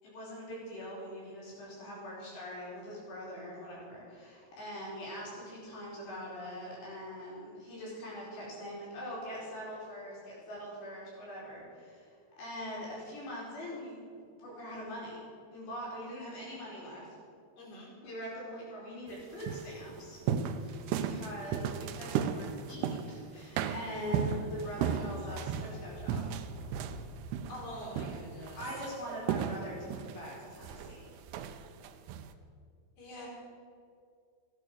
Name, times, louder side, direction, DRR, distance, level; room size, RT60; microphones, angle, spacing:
voice 1, 0.0-12.1 12.4-15.2 15.5-17.1 18.0-20.2 20.6-26.2 28.5-31.1, equal, 90° left, -6 dB, 6.9 m, -43 dB
voice 2, 17.6-17.9 27.5-28.6 33.0-33.3, left 1 dB, 60° left, -6 dB, 6.2 m, -45 dB
sound 1, 19.1-23.2 23.6-32.3, right 7 dB, 85° right, 2.7 m, -36 dB
15.0 x 11.0 x 6.4 m, 2.3 s
omnidirectional pair, 4.8 m